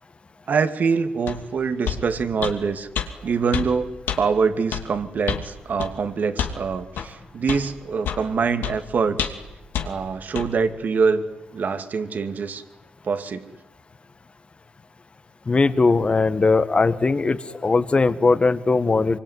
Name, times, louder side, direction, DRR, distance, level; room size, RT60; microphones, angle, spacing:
voice 1, 0.5-2.9 3.2-9.3 9.8-11.2 11.5-12.6 13.0-13.5, right 5 dB, 55° right, 9 dB, 2.4 m, -24 dB
sound 1, 1.3-1.4 1.9-2.0 2.4-2.6 3.0-3.1 3.5-3.7 4.1-4.2 4.7-4.9 5.3-5.5 5.8-5.9 6.4-6.6 7.0-7.1 7.5-7.6 8.0-8.3 8.6-8.8 9.2-9.5 9.7-9.9 10.4-10.5, left 8 dB, 80° left, 2.8 m, -27 dB
voice 2, 15.5-19.2, left 3 dB, 35° left, 12 dB, 1.8 m, -19 dB
25.0 x 23.5 x 9.6 m, 0.97 s
cardioid pair, 70°, 3 cm